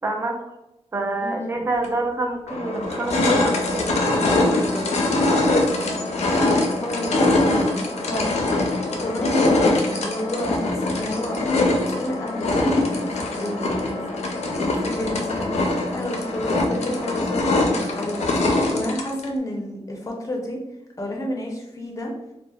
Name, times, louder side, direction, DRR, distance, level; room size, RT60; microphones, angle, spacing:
voice 1, 0.0-0.4 0.9-5.0, right 2 dB, 25° right, 2 dB, 0.4 m, -28 dB
voice 2, 1.2-1.6 6.8-8.5 8.9-14.2 14.5-20.6 21.0-22.1, left 1 dB, 30° left, 0 dB, 0.5 m, -30 dB
sound 1, 1.8-1.9 2.5-19.3, left 2 dB, 85° left, 0.4 m, -22 dB
2.6 x 2.1 x 2.2 m, 0.90 s
wide cardioid pair, 100°, 11 cm